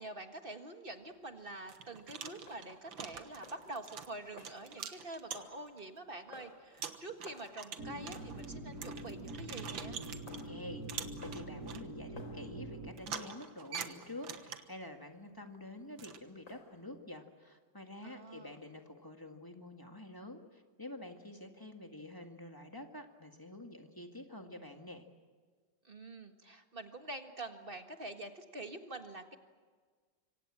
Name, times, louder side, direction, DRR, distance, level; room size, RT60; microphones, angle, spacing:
voice 1, 0.0-10.0 18.0-18.6 25.8-29.4, right 2 dB, 30° right, 6 dB, 1.7 m, -46 dB
sound 1, 0.9-17.0, left 3 dB, 80° left, 4.3 m, -59 dB
sound 2, 1.0-1.1 1.7-5.8 6.3-6.4 6.8-10.5 10.9-11.8 13.0-14.8 16.0-16.2, right 7 dB, 85° right, 2.1 m, -45 dB
sound 3, 7.8-12.9, right 1 dB, 50° right, 4.3 m, -45 dB
voice 2, 10.4-25.1, left 1 dB, 10° left, 4 dB, 1.8 m, -48 dB
25.5 x 25.0 x 7.6 m, 1.5 s
omnidirectional pair, 2.1 m